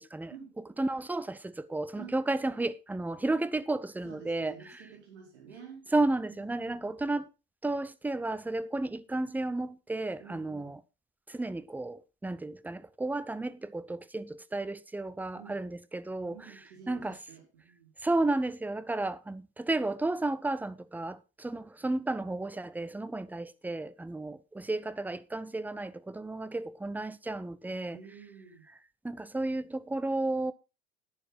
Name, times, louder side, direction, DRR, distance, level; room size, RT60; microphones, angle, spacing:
voice 1, 0.0-4.8 5.9-7.3 7.6-10.8 11.3-16.5 16.9-17.2 18.0-28.0 29.0-30.5, right 2 dB, 5° right, 0.6 m, -33 dB
voice 2, 4.0-5.8 6.3-6.9 10.2-10.7 15.3-15.6 16.2-17.9 27.9-28.7, right 7 dB, 70° right, 4.8 m, -50 dB
11.0 x 9.7 x 4.1 m
figure-of-eight pair, 75°, 34 cm